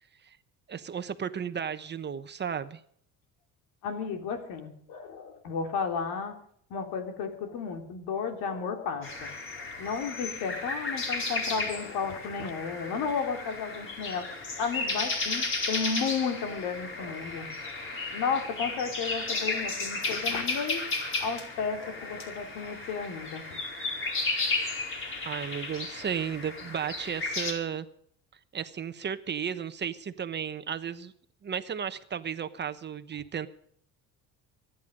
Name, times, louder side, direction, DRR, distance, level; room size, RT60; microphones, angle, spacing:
voice 1, 0.7-2.8 25.2-27.9 28.5-31.1 31.4-33.5, right 8 dB, 30° right, 11 dB, 1.0 m, -34 dB
voice 2, 3.8-6.4 6.7-9.3 9.6-14.3 14.6-17.5 18.1-20.8 21.2-23.6, left 5 dB, 80° left, 5 dB, 3.3 m, -33 dB
sound 1, 9.0-27.5, left 3 dB, 35° left, 4.8 m, -34 dB
24.5 x 10.5 x 5.2 m, 0.65 s
cardioid pair, 130°, 34 cm